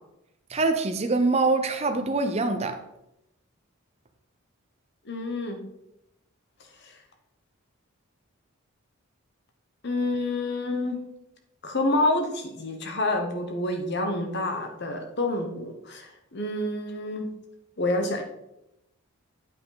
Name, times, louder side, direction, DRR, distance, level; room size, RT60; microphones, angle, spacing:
voice 1, 0.5-2.8, right 3 dB, 30° right, 0.6 m, -24 dB
voice 2, 5.1-5.6 9.8-11.0 11.6-17.3 17.8-18.2, left 2 dB, 55° left, 1.0 m, -28 dB
9.0 x 5.5 x 3.9 m
head